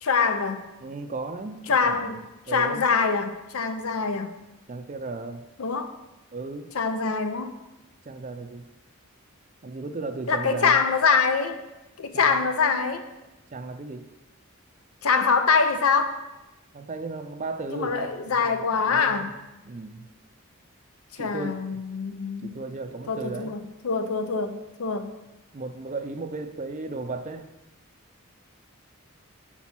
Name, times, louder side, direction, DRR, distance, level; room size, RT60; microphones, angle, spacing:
voice 1, 0.0-0.6 1.7-2.2 2.5-4.3 5.6-5.9 6.7-7.5 10.3-11.6 12.0-13.0 15.0-16.2 17.7-19.3 21.2-22.5 23.1-25.1, left 5 dB, 85° left, 9 dB, 0.6 m, -24 dB
voice 2, 0.8-2.8 4.7-5.4 6.3-6.7 8.0-8.7 9.6-10.8 12.1-12.5 13.5-14.1 16.7-19.3 19.6-20.1 21.2-21.8 22.4-23.5 25.5-27.5, right 3 dB, 35° right, 8 dB, 0.4 m, -35 dB
6.0 x 4.1 x 5.9 m, 1.0 s
head